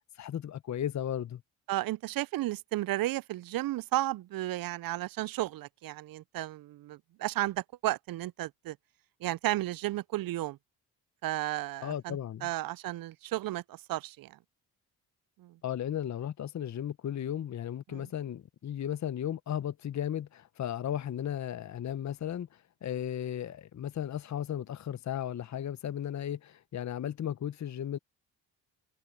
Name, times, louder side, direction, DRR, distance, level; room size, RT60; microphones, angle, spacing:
voice 1, 0.2-1.4 11.8-12.5 15.6-22.5 22.8-28.0, left 10 dB, 40° left, 0.9 m, -35 dB
voice 2, 1.7-8.8 9.2-10.6 11.2-14.4 15.4-15.6 17.9-18.1, right 16 dB, 55° right, 0.6 m, -33 dB
supercardioid pair, 55°, 42 cm